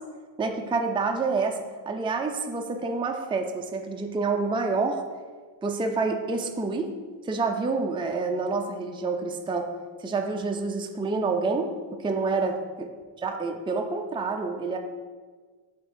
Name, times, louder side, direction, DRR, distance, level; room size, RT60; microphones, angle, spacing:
voice 1, 0.4-1.6 1.9-5.0 5.6-6.9 7.2-9.7 10.0-11.7 12.0-12.9 13.2-14.8, right 4 dB, 10° right, 4 dB, 0.4 m, -28 dB
8.0 x 3.6 x 3.4 m, 1.5 s
wide cardioid pair, 90°, 48 cm